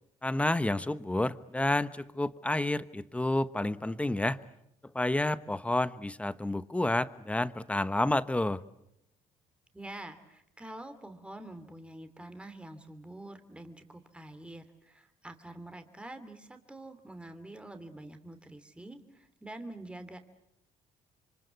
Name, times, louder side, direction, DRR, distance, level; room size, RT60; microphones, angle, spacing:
voice 1, 0.2-4.4 4.9-8.6, left 1 dB, 10° left, 14 dB, 1.0 m, -30 dB
voice 2, 9.7-20.2, right 1 dB, 10° right, 8 dB, 2.7 m, -46 dB
27.0 x 25.0 x 8.2 m, 0.80 s
cardioid pair, 95°, 13 cm